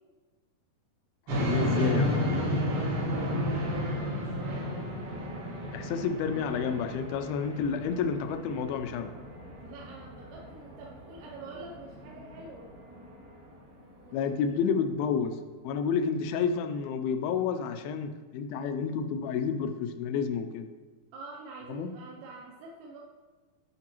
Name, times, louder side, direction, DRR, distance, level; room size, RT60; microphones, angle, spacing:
voice 1, 1.3-2.3 5.7-9.1 14.1-15.4 15.6-20.7 21.7-21.9, left 6 dB, 80° left, 8 dB, 2.3 m, -30 dB
sound 1, 1.3-14.3, equal, 70° right, 3.6 m, -33 dB
voice 2, 2.3-4.7 5.4-5.5 9.5-12.7 14.0-14.2 21.1-23.0, right 3 dB, 90° right, -2 dB, 2.8 m, -47 dB
12.0 x 5.3 x 3.0 m, 1.3 s
omnidirectional pair, 4.3 m